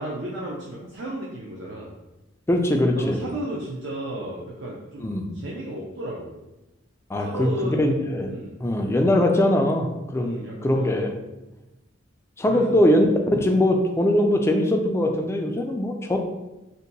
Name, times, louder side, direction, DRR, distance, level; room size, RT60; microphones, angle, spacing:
voice 1, 0.0-1.9 2.9-5.1 5.3-6.4 7.2-7.8 8.3-8.6 10.2-11.1 12.5-12.8, right 1 dB, 65° right, -4 dB, 0.5 m, -34 dB
voice 2, 2.5-3.2 5.0-5.3 7.1-8.3 8.6-9.9 10.1-11.1 12.4-13.1 13.3-16.2, left 1 dB, 15° left, 3 dB, 0.3 m, -21 dB
2.7 x 2.2 x 3.9 m, 0.99 s
head